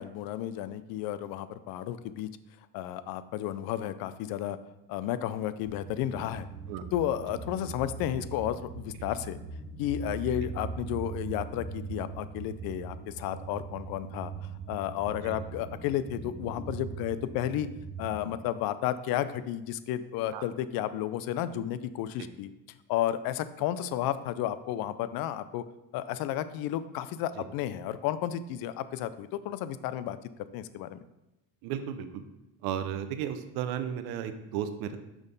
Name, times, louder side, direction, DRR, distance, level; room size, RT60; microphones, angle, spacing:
voice 1, 0.0-2.3 2.7-4.6 4.9-6.5 6.9-9.4 9.8-14.3 14.7-17.7 18.0-22.5 22.9-25.6 25.9-30.2 30.5-31.0, left 11 dB, 75° left, 14 dB, 0.5 m, -32 dB
sound 1, 5.6-18.3, right 4 dB, 60° right, 1.8 m, -41 dB
voice 2, 31.6-32.2 32.6-35.0, right 9 dB, 90° right, 9 dB, 0.7 m, -34 dB
6.1 x 5.3 x 4.0 m, 0.93 s
cardioid pair, 125°, 36 cm